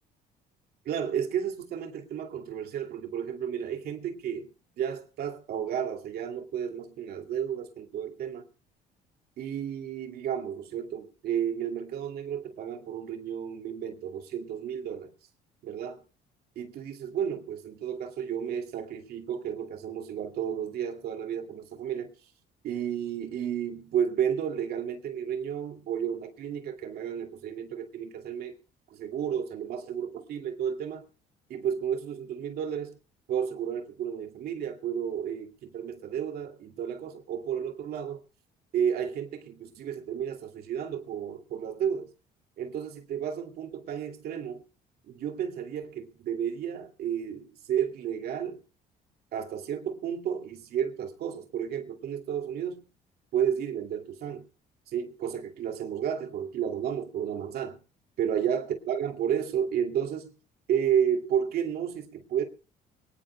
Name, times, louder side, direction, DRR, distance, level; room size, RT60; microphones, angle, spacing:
voice 1, 0.8-4.5 4.8-8.5 9.4-15.1 15.6-16.0 16.6-22.1 22.6-28.5 28.9-31.1 31.5-33.0 33.3-38.2 38.7-42.1 42.6-44.6 45.1-48.6 49.3-52.9 53.3-54.5 54.9-57.8 58.2-60.3 60.7-62.4, right 8 dB, 70° right, 5 dB, 2.5 m, -32 dB
23.5 x 18.5 x 2.2 m, 0.34 s
cardioid pair, 110°, 17 cm